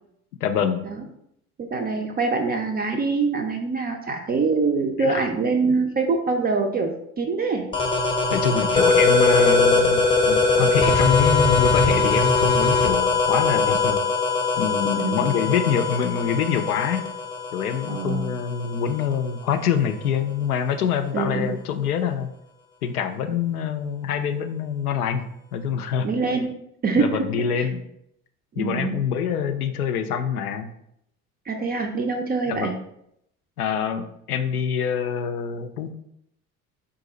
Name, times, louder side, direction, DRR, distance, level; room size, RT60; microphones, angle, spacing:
voice 1, 0.4-0.9 5.0-5.2 8.3-14.0 14.6-17.0 17.5-22.3 22.8-25.2 25.5-26.1 27.0-27.8 28.6-30.7 32.5-32.7 33.6-35.9, left 7 dB, 85° left, 7 dB, 0.5 m, -25 dB
voice 2, 1.6-6.9 7.2-7.6 15.0-15.3 17.9-18.3 21.1-21.5 26.0-26.5 26.8-27.7 28.6-29.0 31.5-32.7, right 4 dB, 25° right, 3 dB, 0.4 m, -24 dB
sound 1, 7.7-19.1, left 3 dB, 10° left, 0.7 m, -21 dB
3.9 x 2.5 x 3.8 m, 0.76 s
hypercardioid pair, 65°, 44 cm